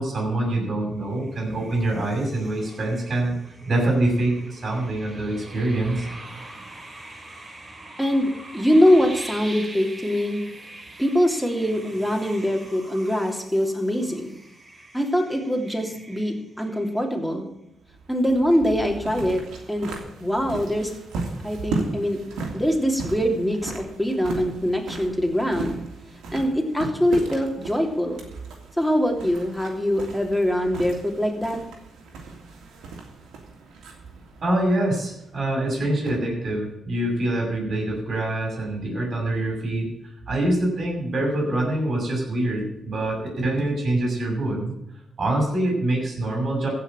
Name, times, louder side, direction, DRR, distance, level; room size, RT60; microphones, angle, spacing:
voice 1, 0.0-3.3 3.7-6.0 34.4-39.9 40.3-44.7 45.2-46.7, right 1 dB, 50° right, -1 dB, 6.4 m, -25 dB
sound 1, 1.0-17.3, right 2 dB, 30° right, 4.2 m, -43 dB
voice 2, 8.0-10.4 11.0-14.3 14.9-17.5 18.1-19.4 19.7-19.9 20.2-20.9 21.4-22.2 22.5-25.8 26.3-28.2 28.8-31.6, equal, ahead, 2 dB, 3.2 m, -23 dB
sound 2, 17.8-35.5, right 3 dB, 85° right, 2.8 m, -36 dB
15.5 x 6.1 x 9.1 m, 0.82 s
supercardioid pair, 60°, 0 cm